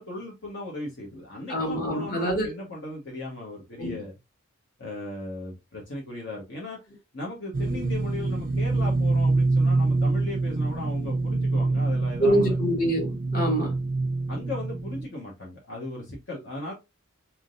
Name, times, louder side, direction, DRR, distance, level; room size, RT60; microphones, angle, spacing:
voice 1, 0.0-4.1 4.8-6.8 7.1-12.6 14.3-16.7, left 2 dB, 60° left, 1.3 m, -37 dB
voice 2, 1.5-2.5 3.8-4.0 12.2-13.7, right 1 dB, 45° left, 1.8 m, -25 dB
sound 1, 7.5-15.1, right 2 dB, 40° right, 0.5 m, -25 dB
4.3 x 3.7 x 2.6 m
head